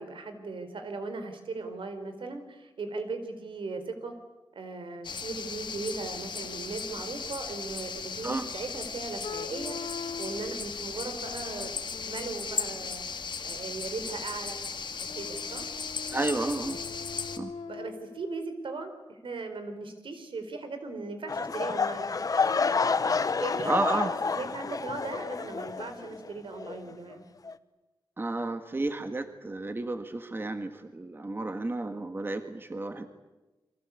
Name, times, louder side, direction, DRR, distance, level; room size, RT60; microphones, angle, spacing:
voice 1, 0.0-4.1 4.5-13.0 13.4-14.6 15.0-15.7 17.7-22.2 23.4-24.1 24.4-27.2, right 3 dB, 85° right, 8 dB, 4.2 m, -38 dB
sound 1, 5.0-17.4, left 5 dB, 65° left, 2.1 m, -37 dB
sound 2, 9.2-10.6 11.2-13.0 15.1-18.4, left 6 dB, 85° left, 0.9 m, -42 dB
voice 2, 16.1-16.8 17.4-17.5 23.6-24.1 28.2-33.1, right 2 dB, 25° right, 7 dB, 1.7 m, -31 dB
sound 3, 21.3-26.3 26.6-26.9 27.5-27.6, left 4 dB, 45° left, 1.0 m, -29 dB
29.5 x 24.0 x 8.4 m, 1.1 s
wide cardioid pair, 155°, 9 cm